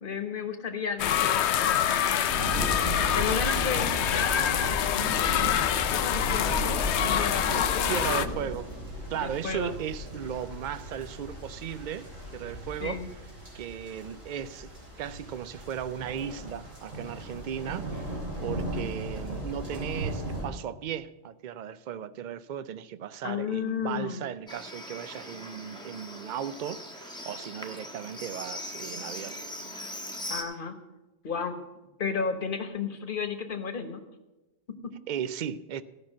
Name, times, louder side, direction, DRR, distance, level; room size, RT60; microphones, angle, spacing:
voice 1, 0.0-7.8 9.1-9.7 12.8-13.1 18.5-18.9 23.2-24.2 30.3-30.8 31.2-31.6 32.0-34.0 34.7-34.9, left 5 dB, 45° left, 1.3 m, -33 dB
sound 1, 1.0-8.3, left 10 dB, 70° left, 0.8 m, -26 dB
sound 2, 2.3-20.4, equal, 90° right, 4.8 m, -36 dB
voice 2, 7.9-8.7 9.1-13.0 13.5-14.7 15.0-29.4 35.1-35.8, right 9 dB, 55° right, 0.5 m, -36 dB
Livestock farm animals working animals, 24.5-30.4, left 1 dB, 5° left, 1.1 m, -40 dB
15.0 x 5.8 x 7.3 m
omnidirectional pair, 1.3 m